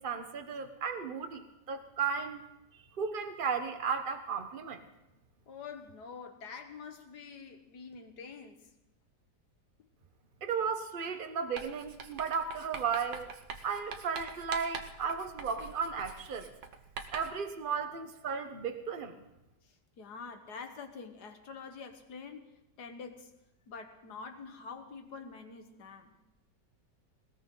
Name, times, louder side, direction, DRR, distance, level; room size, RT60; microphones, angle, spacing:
voice 1, 0.0-2.4 3.0-4.8 10.4-13.3 13.6-16.5 17.1-19.2, right 6 dB, 35° right, 7 dB, 1.1 m, -35 dB
voice 2, 5.5-8.7 19.6-22.5 22.8-23.3 23.7-26.1, left 5 dB, 65° left, 6 dB, 1.9 m, -46 dB
Writing, 11.6-17.5, right 5 dB, 85° right, 1.7 m, -45 dB
19.5 x 19.0 x 3.9 m, 0.90 s
omnidirectional pair, 1.9 m